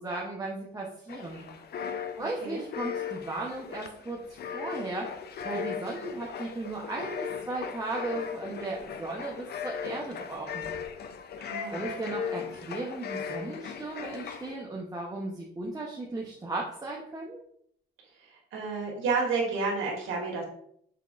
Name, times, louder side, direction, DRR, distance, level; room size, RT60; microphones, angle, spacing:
voice 1, 0.0-1.5 2.2-5.1 5.4-10.7 11.7-17.4, right 2 dB, 15° right, -2 dB, 0.8 m, -36 dB
sound 1, 1.1-14.6, left 7 dB, 55° left, 0.5 m, -38 dB
voice 2, 11.4-11.8 18.5-20.4, right 4 dB, 80° right, -2 dB, 1.4 m, -30 dB
5.9 x 3.5 x 2.4 m, 0.66 s
cardioid pair, 90°, 20 cm